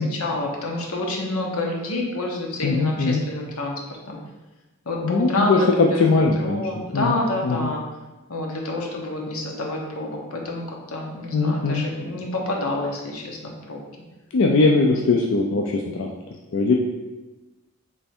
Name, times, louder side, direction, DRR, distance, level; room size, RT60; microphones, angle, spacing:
voice 1, 0.0-3.8 4.1-4.2 4.9-5.7 6.4-7.8 8.3-13.4 13.7-13.8, left 2 dB, 85° left, -1 dB, 0.9 m, -28 dB
voice 2, 2.6-3.2 5.0-7.7 11.3-11.8 14.3-16.1 16.5-16.7, left 3 dB, 60° left, 0 dB, 0.4 m, -20 dB
3.4 x 3.3 x 4.3 m, 1.1 s
head